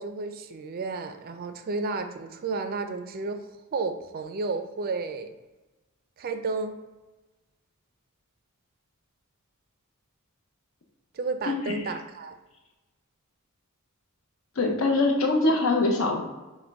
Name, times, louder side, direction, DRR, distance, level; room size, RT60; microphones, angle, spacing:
voice 1, 0.0-3.5 3.7-5.3 6.2-6.7 11.1-12.4, right 3 dB, 45° right, 8 dB, 0.4 m, -32 dB
voice 2, 11.5-11.8 14.6-16.2, left 2 dB, 65° left, 2 dB, 0.7 m, -23 dB
5.9 x 2.2 x 3.5 m, 1.1 s
head